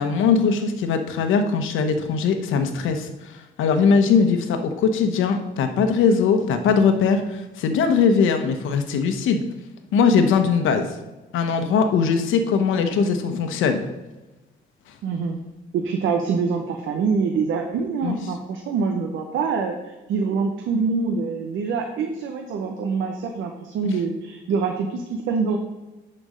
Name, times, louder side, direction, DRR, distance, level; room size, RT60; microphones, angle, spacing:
voice 1, 0.0-9.4 9.9-10.9 11.3-13.9 18.0-18.2 23.8-23.9, left 5 dB, 85° left, 7 dB, 1.0 m, -20 dB
voice 2, 15.0-15.4 15.7-25.6, right 5 dB, 80° right, 3 dB, 0.9 m, -25 dB
10.5 x 4.4 x 5.1 m, 1.1 s
cardioid pair, 90°, 20 cm